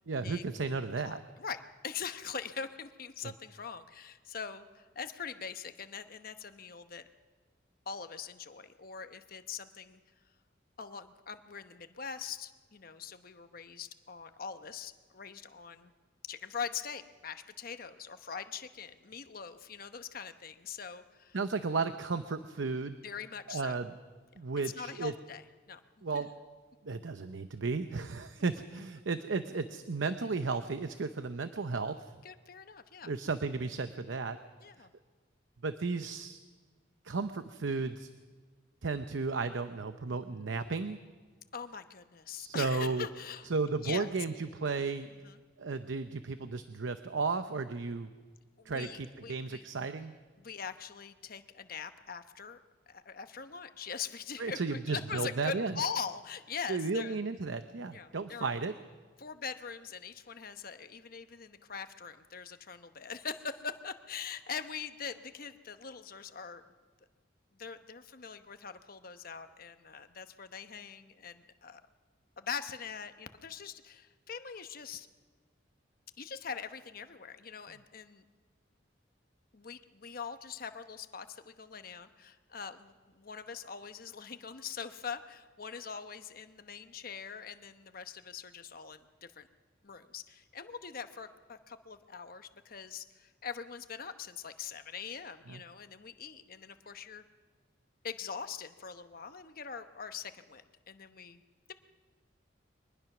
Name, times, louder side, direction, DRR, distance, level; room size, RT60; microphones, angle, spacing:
voice 1, 0.1-1.2 21.3-23.0 23.5-23.9 24.4-25.1 26.0-26.3 26.8-32.1 33.0-34.4 34.8-34.9 35.6-36.4 37.0-38.1 38.8-41.0 42.3-43.1 43.5-45.1 45.6-48.1 48.7-50.1 54.4-55.8 56.7-58.7 95.5-95.6, right 4 dB, 90° right, 10 dB, 0.7 m, -34 dB
voice 2, 1.0-7.1 7.9-10.0 10.8-15.9 16.3-21.4 23.0-23.8 24.7-25.8 26.1-26.2 32.2-33.1 34.6-34.9 41.5-43.5 43.8-44.1 45.2-45.4 48.6-49.6 50.4-52.6 52.9-57.2 57.9-58.5 59.2-66.6 67.6-71.8 72.4-75.1 76.2-78.2 79.5-89.5 89.8-97.2 98.0-101.4, left 6 dB, 50° left, 9 dB, 1.0 m, -42 dB
23.0 x 20.0 x 6.1 m, 1.4 s
head